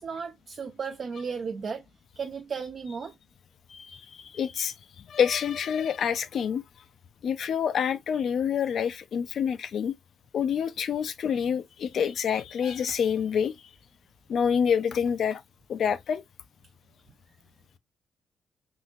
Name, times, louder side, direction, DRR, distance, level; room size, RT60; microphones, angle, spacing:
voice 1, 0.0-1.8 2.2-3.1, right 5 dB, 35° right, 0.3 m, -34 dB
voice 2, 3.7-6.6 7.2-10.0 10.3-13.5 14.3-15.4 15.7-16.2, left 7 dB, 50° left, 0.4 m, -27 dB
3.7 x 2.7 x 2.3 m
cardioid pair, 155°, 0 cm